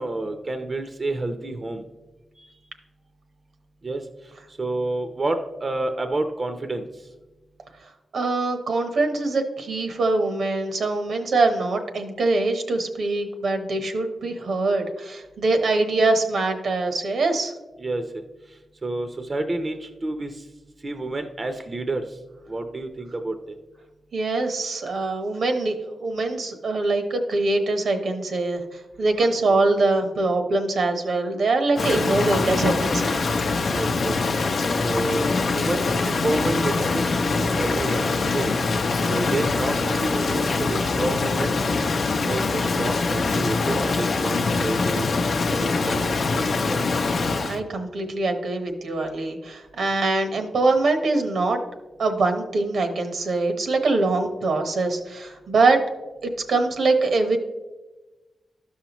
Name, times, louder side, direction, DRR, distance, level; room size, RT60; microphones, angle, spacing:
voice 1, 0.0-1.8 3.8-4.1 4.5-7.1 17.8-18.2 18.8-20.4 20.8-22.2 22.5-23.6 29.2-29.3 31.8-31.9 33.7-34.2 34.8-35.3 35.5-38.5 39.1-41.6 42.1-45.0 45.5-46.8, right 2 dB, 40° right, 7 dB, 0.6 m, -29 dB
voice 2, 8.1-17.5 24.1-33.2 47.5-51.6 52.0-55.8 56.2-57.4, right 3 dB, 75° right, 5 dB, 1.0 m, -23 dB
Rain, 31.8-47.6, left 3 dB, 65° left, 0.6 m, -23 dB
12.5 x 5.7 x 3.0 m, 1.1 s
cardioid pair, 70°, 0 cm